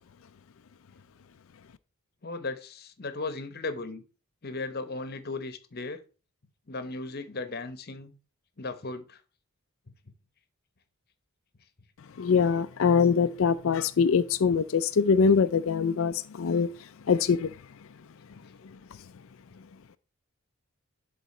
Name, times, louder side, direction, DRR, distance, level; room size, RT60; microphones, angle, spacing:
voice 1, 2.2-4.0 4.4-6.0 6.7-8.1 8.6-9.2, left 3 dB, 45° left, 0.9 m, -36 dB
voice 2, 12.2-16.7 17.1-17.5, left 5 dB, 65° left, 0.4 m, -23 dB
11.0 x 4.0 x 4.3 m
head